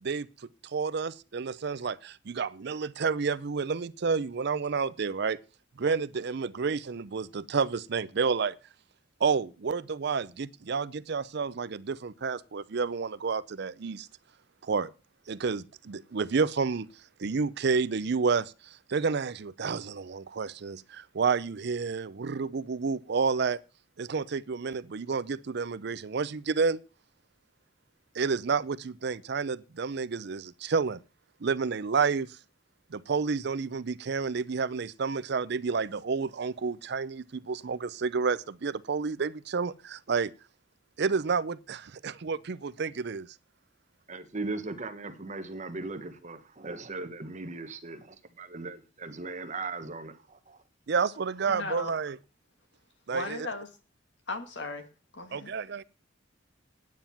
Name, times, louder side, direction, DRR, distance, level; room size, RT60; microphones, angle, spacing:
voice 1, 0.0-5.4 5.8-8.6 9.2-14.1 14.6-14.9 15.3-16.9 17.2-23.6 24.0-26.8 28.1-31.0 31.4-32.4 32.9-40.3 41.0-43.3 50.9-52.2 53.1-53.5 55.3-55.8, right 5 dB, 60° right, 0.5 m, -30 dB
voice 2, 44.1-50.6, right 3 dB, 40° right, 1.2 m, -38 dB
voice 3, 51.5-51.9 53.1-53.7 54.3-54.9 55.1-55.5, left 3 dB, 65° left, 1.9 m, -36 dB
9.3 x 9.0 x 5.8 m
head